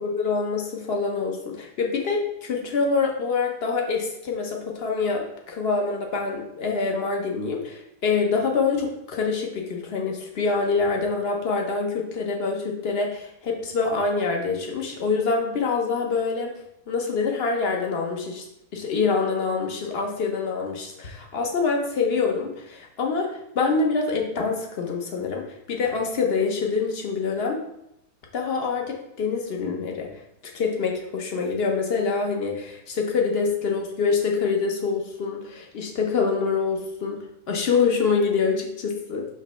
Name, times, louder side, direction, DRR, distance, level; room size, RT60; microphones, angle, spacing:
voice 1, 0.0-16.5 16.9-18.4 18.7-27.6 28.3-30.1 30.5-39.3, left 4 dB, 45° left, 1 dB, 1.0 m, -25 dB
5.1 x 3.3 x 5.6 m, 0.80 s
omnidirectional pair, 1.8 m